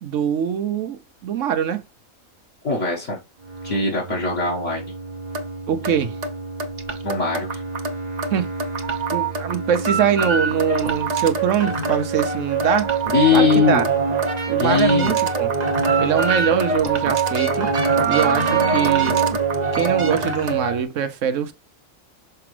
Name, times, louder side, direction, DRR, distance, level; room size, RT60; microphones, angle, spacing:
voice 1, 0.0-1.8 5.7-6.2 8.3-8.5 9.1-12.9 13.3-13.8 14.5-15.5 16.0-17.7 18.1-19.2 19.7-21.5, right 8 dB, 65° right, 1.0 m, -23 dB
voice 2, 2.6-3.2 3.6-4.9 7.0-7.6 13.1-13.9 14.6-15.1, left 4 dB, 55° left, 1.9 m, -20 dB
sound 1, 3.5-20.8, right 4 dB, 35° right, 0.9 m, -23 dB
6.7 x 4.8 x 3.2 m
omnidirectional pair, 1.5 m